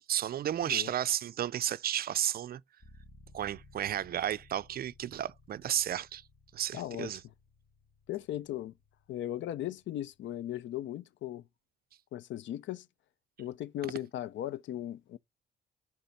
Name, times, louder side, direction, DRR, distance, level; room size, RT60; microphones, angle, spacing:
voice 1, 0.1-2.6 3.3-6.2 6.5-7.2, right 11 dB, 50° right, 0.4 m, -32 dB
sound 1, 2.8-10.5, left 2 dB, 35° left, 1.3 m, -60 dB
voice 2, 6.7-7.1 8.1-8.7 9.1-11.5 12.1-12.9 13.4-15.2, left 12 dB, 70° left, 0.5 m, -37 dB
6.9 x 3.6 x 5.2 m
cardioid pair, 90°, 20 cm